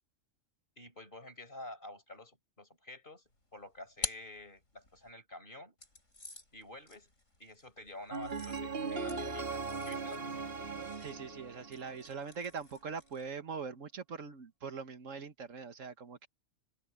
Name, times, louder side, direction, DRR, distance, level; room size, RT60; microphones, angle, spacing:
voice 1, 0.8-3.2 3.5-5.7 6.5-7.1 7.4-10.4, left 1 dB, 40° left, 4.9 m, -49 dB
sound 1, 3.3-5.1 5.8-13.4, left 4 dB, 70° left, 5.9 m, -48 dB
sound 2, 8.1-12.2, right 4 dB, 45° right, 2.4 m, -39 dB
voice 2, 11.0-16.3, right 5 dB, 75° right, 1.8 m, -42 dB
open air
omnidirectional pair, 1.4 m